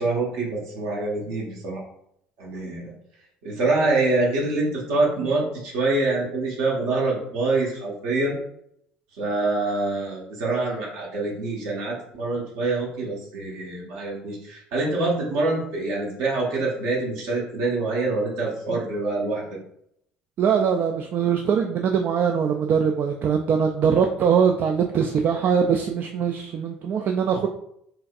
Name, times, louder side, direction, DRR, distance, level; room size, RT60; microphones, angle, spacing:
voice 1, 0.0-1.8 2.4-2.9 3.4-8.4 9.2-19.4, right 2 dB, 65° right, -3 dB, 1.4 m, -25 dB
voice 2, 20.4-27.5, right 7 dB, 45° right, 4 dB, 0.4 m, -22 dB
4.6 x 3.3 x 2.5 m, 0.73 s
figure-of-eight pair, 55°, 5 cm